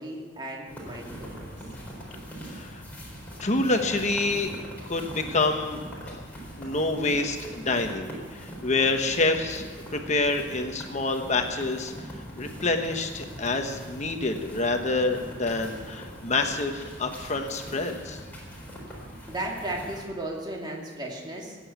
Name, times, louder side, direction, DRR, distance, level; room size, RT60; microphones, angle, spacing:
voice 1, 0.0-1.5 19.3-21.6, right 1 dB, 25° right, -1 dB, 2.6 m, -35 dB
sound 1, 0.7-20.0, equal, 10° left, 4.2 m, -41 dB
voice 2, 2.5-2.8 3.4-4.5 4.9-5.8 6.1-6.2 6.6-9.6 9.9-11.9 12.4-18.2, left 3 dB, 40° left, 5 dB, 1.2 m, -27 dB
18.0 x 8.5 x 8.2 m, 1.5 s
head